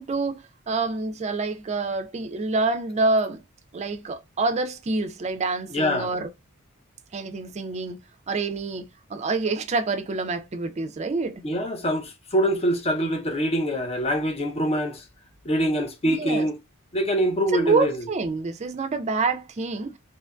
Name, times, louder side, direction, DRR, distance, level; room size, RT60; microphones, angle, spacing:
voice 1, 0.0-3.4 3.7-6.3 7.1-8.0 8.3-11.4 16.1-16.5 17.5-19.9, right 3 dB, 30° right, 0.4 m, -27 dB
voice 2, 5.7-6.1 11.4-15.0 15.4-16.6 16.9-18.0, equal, 30° left, 0.5 m, -24 dB
2.7 x 2.5 x 2.2 m
head